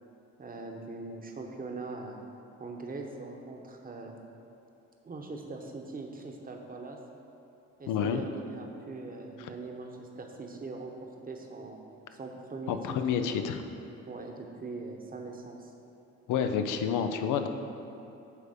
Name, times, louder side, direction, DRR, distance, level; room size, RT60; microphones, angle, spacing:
voice 1, 0.4-2.2 2.6-4.2 5.0-7.0 7.8-11.8 12.1-12.8 13.2-13.4 14.1-15.7, right 3 dB, 30° right, 2 dB, 1.0 m, -41 dB
voice 2, 7.9-8.2 12.7-13.6 16.3-17.5, left 7 dB, 85° left, 7 dB, 0.6 m, -29 dB
9.2 x 3.5 x 6.6 m, 2.9 s
cardioid pair, 90°, 30 cm